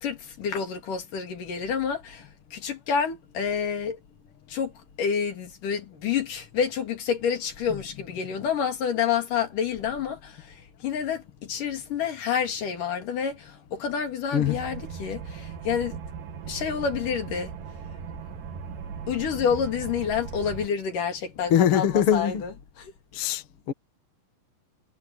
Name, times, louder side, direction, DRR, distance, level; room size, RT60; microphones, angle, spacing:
voice 1, 0.0-2.2 2.5-4.0 4.5-4.7 5.0-16.0 16.5-17.5 19.1-22.9, left 7 dB, 75° left, 4.2 m, -28 dB
sound 1, 14.4-20.7, right 6 dB, 75° right, 3.6 m, -38 dB
voice 2, 21.5-22.4 23.1-23.7, left 9 dB, 50° left, 2.2 m, -22 dB
omnidirectional pair, 3.8 m